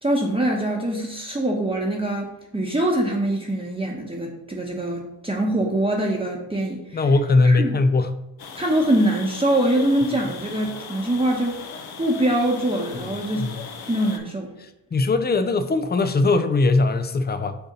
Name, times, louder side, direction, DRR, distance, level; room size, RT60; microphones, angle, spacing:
voice 1, 0.0-7.1 7.4-7.8 8.5-11.6 12.0-13.4 13.8-14.5, right 1 dB, 10° right, -2 dB, 1.1 m, -23 dB
voice 2, 6.9-8.2 13.0-13.5 14.9-17.6, left 3 dB, 20° left, 10 dB, 0.6 m, -20 dB
sound 1, 8.4-14.2, left 5 dB, 50° left, 0.9 m, -38 dB
6.5 x 2.7 x 5.4 m, 0.87 s
supercardioid pair, 55°, 49 cm